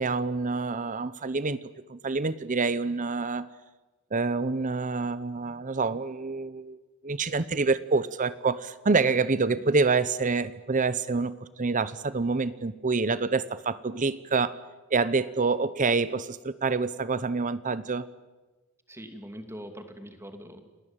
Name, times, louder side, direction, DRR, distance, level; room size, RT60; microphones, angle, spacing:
voice 1, 0.0-1.6 1.9-3.5 4.1-6.8 7.0-14.6 14.9-18.1, right 4 dB, 35° right, 16 dB, 0.8 m, -27 dB
voice 2, 18.9-20.7, equal, 10° right, 7 dB, 2.6 m, -43 dB
30.0 x 19.0 x 9.0 m, 1.2 s
head